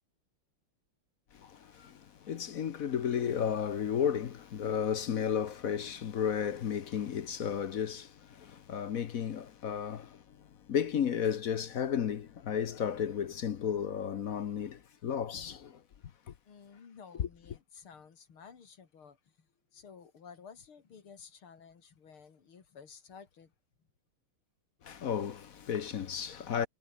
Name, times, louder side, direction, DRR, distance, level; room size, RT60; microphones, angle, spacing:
voice 1, 1.3-15.8 16.3-16.4 17.2-17.3 24.8-26.7, left 8 dB, 55° left, 1.1 m, -33 dB
voice 2, 16.4-23.5 26.6-26.7, left 6 dB, 80° left, 3.4 m, -53 dB
omnidirectional pair, 2.3 m